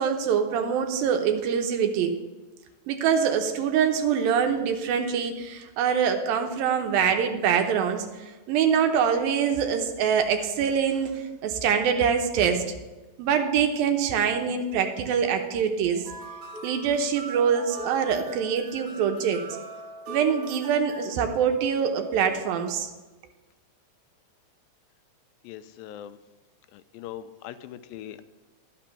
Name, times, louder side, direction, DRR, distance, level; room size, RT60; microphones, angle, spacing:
voice 1, 0.0-2.1 2.9-12.8 13.2-16.0 16.6-19.4 20.1-22.9, right 7 dB, 90° right, 5 dB, 2.7 m, -24 dB
sound 1, 15.9-21.1, right 2 dB, 70° right, 3.1 m, -40 dB
voice 2, 25.4-26.2 26.7-28.2, left 11 dB, 85° left, 12 dB, 2.3 m, -41 dB
11.5 x 6.0 x 5.9 m, 1.2 s
omnidirectional pair, 4.1 m